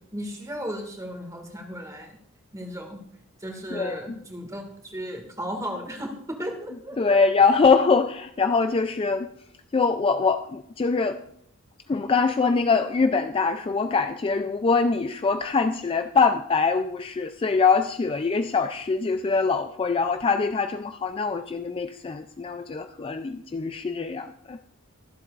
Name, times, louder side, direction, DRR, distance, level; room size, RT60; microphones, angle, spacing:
voice 1, 0.1-2.2 2.5-3.0 3.4-7.2, equal, 15° right, 3 dB, 1.9 m, -35 dB
voice 2, 7.0-9.3 9.7-11.2 11.9-24.7, left 4 dB, 25° left, 8 dB, 0.3 m, -23 dB
23.0 x 7.8 x 2.5 m, 0.70 s
head